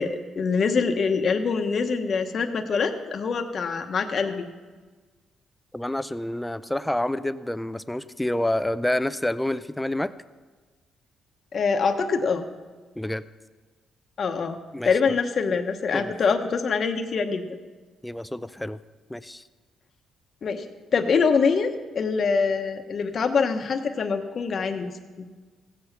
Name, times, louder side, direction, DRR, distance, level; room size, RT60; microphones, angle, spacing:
voice 1, 0.0-4.4 11.5-12.4 14.2-14.6 14.8-17.4 20.4-20.6 20.9-24.9 25.2-25.3, left 5 dB, 50° left, 5 dB, 1.0 m, -24 dB
voice 2, 5.7-10.1 13.0-13.2 14.7-15.2 15.9-16.1 18.0-18.8 19.1-19.4, left 1 dB, 5° left, 14 dB, 0.4 m, -28 dB
16.0 x 7.9 x 5.8 m, 1.4 s
cardioid pair, 90°, 0 cm